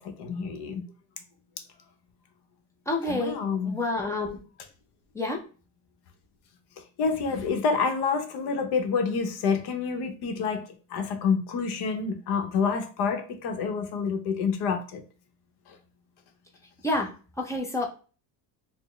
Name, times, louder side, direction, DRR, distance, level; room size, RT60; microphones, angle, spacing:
voice 1, 0.0-0.9 3.0-3.8 7.0-10.6 10.9-15.0 15.7-15.8, left 5 dB, 65° left, 0.8 m, -28 dB
voice 2, 2.9-3.4 3.6-4.4 5.1-5.4 16.8-17.9, left 2 dB, 10° left, 0.3 m, -29 dB
4.1 x 2.0 x 3.1 m
cardioid pair, 165°, 42 cm